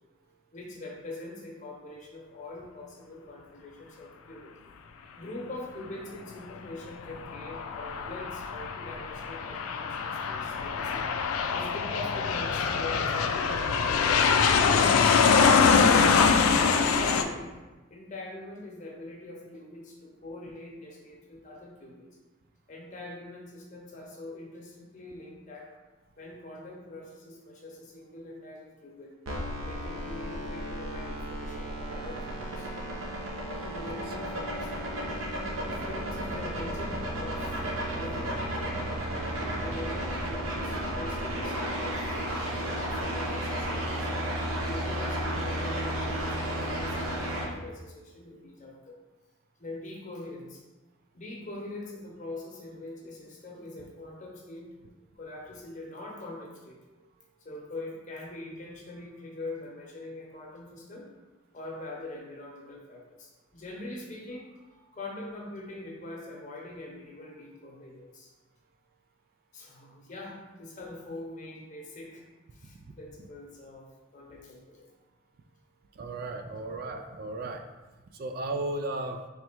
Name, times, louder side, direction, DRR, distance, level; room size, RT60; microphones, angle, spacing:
voice 1, 0.5-4.5 5.1-11.1 11.5-14.3 14.7-16.1 16.5-17.5 17.9-22.1 22.7-25.8 26.2-29.1 29.6-32.7 33.3-34.7 35.5-37.6 37.9-38.7 39.2-44.1 44.6-49.0 49.6-50.6 51.1-54.7 55.1-56.8 57.4-61.1 61.5-64.6 64.9-68.3 69.5-72.2 72.5-73.9 74.1-74.9, left 2 dB, 35° left, -1 dB, 0.9 m, -43 dB
Aircraft, 7.0-17.2, left 5 dB, 90° left, 0.4 m, -24 dB
sound 1, 29.3-47.4, right 1 dB, 85° right, 0.9 m, -33 dB
voice 2, 75.9-77.6 78.1-79.2, right 2 dB, 45° right, 5 dB, 0.3 m, -35 dB
3.4 x 3.2 x 4.4 m, 1.2 s
head